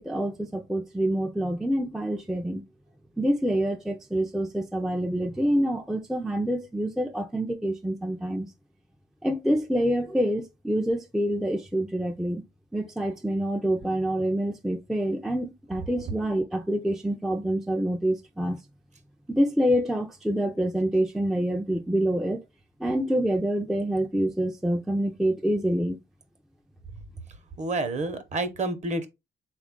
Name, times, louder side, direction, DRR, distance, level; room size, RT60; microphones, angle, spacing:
voice 1, 0.0-2.6 3.2-8.5 9.2-12.4 12.7-18.6 19.3-22.4 22.8-26.0, right 1 dB, ahead, 0.4 m, -26 dB
voice 2, 27.6-29.1, right 2 dB, 35° right, 0.8 m, -29 dB
3.7 x 2.4 x 3.6 m
cardioid pair, 90°, 20 cm